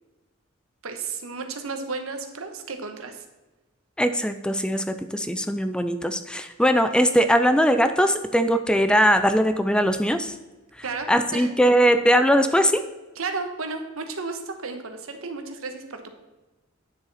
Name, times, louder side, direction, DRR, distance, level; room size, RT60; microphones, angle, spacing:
voice 1, 0.8-3.2 10.8-11.5 13.2-16.1, right 4 dB, 80° right, 6 dB, 1.1 m, -33 dB
voice 2, 4.0-10.3 11.1-12.8, equal, 5° left, 9 dB, 0.4 m, -20 dB
9.7 x 6.8 x 4.1 m, 1.1 s
head